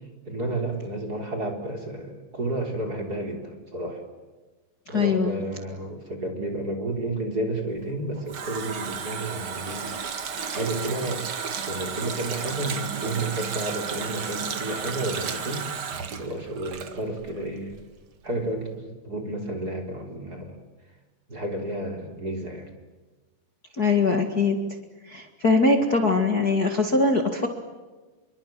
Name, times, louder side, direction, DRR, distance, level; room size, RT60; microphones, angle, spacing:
voice 1, 0.3-4.0 4.9-9.9 10.5-11.3 11.7-15.7 16.2-17.8 18.2-20.6 21.3-22.7, right 2 dB, 20° right, 3 dB, 3.7 m, -31 dB
voice 2, 4.9-5.4 23.8-24.6 25.1-27.5, left 3 dB, 70° left, 4 dB, 0.9 m, -22 dB
Water tap faucet, 7.8-17.4 17.7-17.8, right 6 dB, 55° right, 1.5 m, -33 dB
26.5 x 24.0 x 9.0 m, 1.2 s
omnidirectional pair, 5.2 m